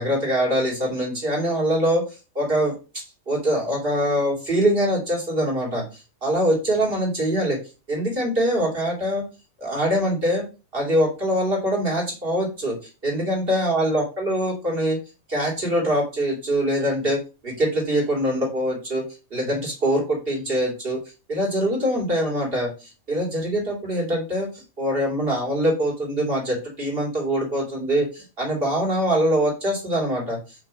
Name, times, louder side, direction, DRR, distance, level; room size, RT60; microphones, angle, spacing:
voice 1, 0.0-2.0 2.3-5.8 6.2-7.6 7.9-9.2 9.6-10.4 10.7-12.8 13.0-15.0 15.3-19.0 19.3-21.0 21.3-22.7 23.1-30.4, equal, 40° right, -2 dB, 3.0 m, -23 dB
6.0 x 3.9 x 6.2 m, 0.32 s
omnidirectional pair, 1.5 m